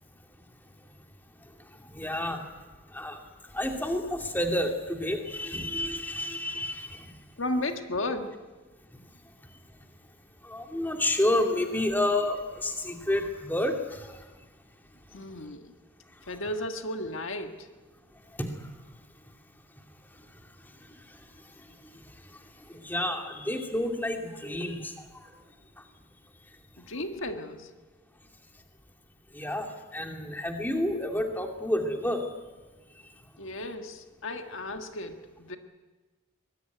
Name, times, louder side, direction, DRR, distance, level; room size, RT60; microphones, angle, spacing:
voice 1, 1.9-2.4 2.9-3.2 3.5-7.1 10.4-14.2 15.1-15.2 18.4-18.5 22.7-24.9 29.3-32.3, left 1 dB, 10° left, 3 dB, 2.4 m, -29 dB
voice 2, 7.4-8.4 15.1-15.7 16.3-17.7 26.8-27.7 33.4-35.6, left 1 dB, 60° left, 6 dB, 1.6 m, -34 dB
23.5 x 21.0 x 9.4 m, 1.3 s
head